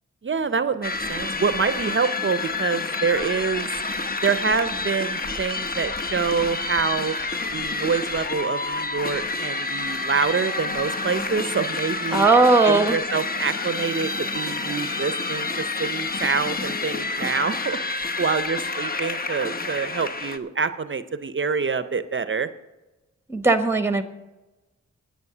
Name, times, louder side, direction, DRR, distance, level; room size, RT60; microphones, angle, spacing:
voice 1, 0.2-3.7 4.2-7.1 7.5-12.3 12.6-15.5 15.8-22.5, right 5 dB, 40° right, 12 dB, 0.6 m, -26 dB
sound 1, 0.8-20.4, left 3 dB, 30° left, 0.8 m, -29 dB
voice 2, 12.1-13.0 23.3-24.0, right 3 dB, 10° right, 9 dB, 0.9 m, -18 dB
9.8 x 9.1 x 6.7 m, 1.1 s
wide cardioid pair, 85°, 30 cm